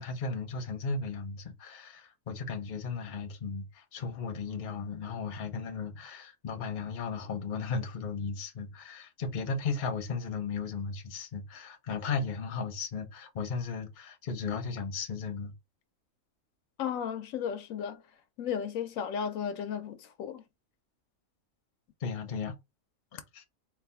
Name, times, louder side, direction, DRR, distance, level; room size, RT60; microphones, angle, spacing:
voice 1, 0.0-15.5 22.0-22.5 23.3-23.4, left 4 dB, 45° left, 0.8 m, -35 dB
voice 2, 16.8-18.0 18.4-20.4, left 8 dB, 75° left, 1.0 m, -34 dB
4.1 x 2.6 x 3.4 m
omnidirectional pair, 1.4 m